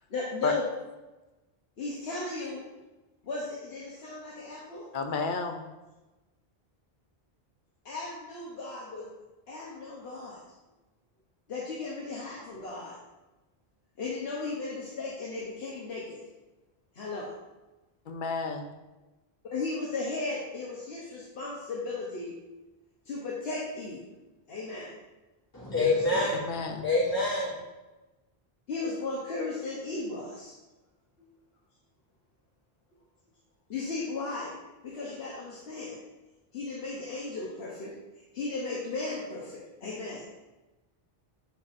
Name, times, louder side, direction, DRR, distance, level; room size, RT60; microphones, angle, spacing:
voice 1, 0.1-0.6 1.8-2.6 3.2-4.8 7.8-9.1 9.5-10.4 11.5-13.0 14.0-16.2 17.0-17.3 19.5-22.3 23.1-24.0 24.5-24.9 25.7-26.3 28.7-30.5 33.7-34.5 34.8-36.0 36.5-38.0 38.3-40.2, left 3 dB, 80° left, -4 dB, 1.1 m, -36 dB
voice 2, 4.9-5.7 18.1-18.7 26.3-26.9, left 4 dB, 55° left, 5 dB, 0.8 m, -31 dB
voice 3, 25.5-26.4 26.7-27.6, left 2 dB, 20° left, -7 dB, 1.7 m, -26 dB
9.0 x 4.1 x 2.5 m, 1.1 s
omnidirectional pair, 1.0 m